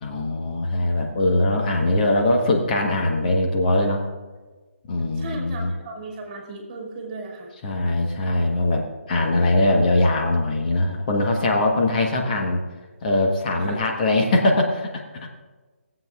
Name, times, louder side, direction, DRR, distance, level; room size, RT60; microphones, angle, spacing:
voice 1, 0.0-4.1 4.9-5.7 7.5-12.6 13.0-15.3, left 2 dB, 35° left, 1 dB, 1.2 m, -21 dB
voice 2, 5.2-7.5 13.5-13.8, right 2 dB, 30° right, 0 dB, 2.2 m, -36 dB
19.5 x 7.8 x 2.4 m, 1.3 s
figure-of-eight pair, 150°, 7 cm